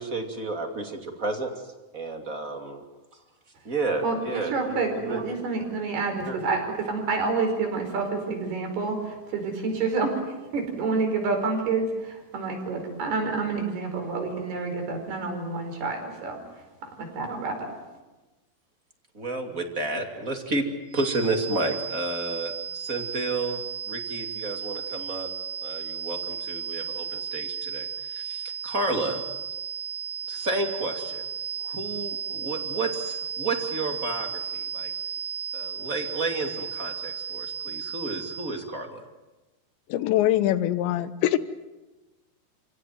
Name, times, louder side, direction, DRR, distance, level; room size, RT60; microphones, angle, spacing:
voice 1, 0.0-2.8 3.1-3.2 3.6-5.5 6.2-6.4 19.1-20.6 20.9-23.6 23.9-25.3 25.6-29.2 30.3-31.3 31.6-34.9 35.5-39.0, right 2 dB, 25° right, 4 dB, 2.1 m, -31 dB
voice 2, 4.0-16.4 16.8-17.7, right 4 dB, 60° right, 4 dB, 6.7 m, -28 dB
sound 1, 20.9-38.6, right 7 dB, 90° right, 7.6 m, -34 dB
voice 3, 39.9-41.4, left 13 dB, 80° left, 13 dB, 3.3 m, -23 dB
29.0 x 17.0 x 9.5 m, 1.1 s
omnidirectional pair, 5.1 m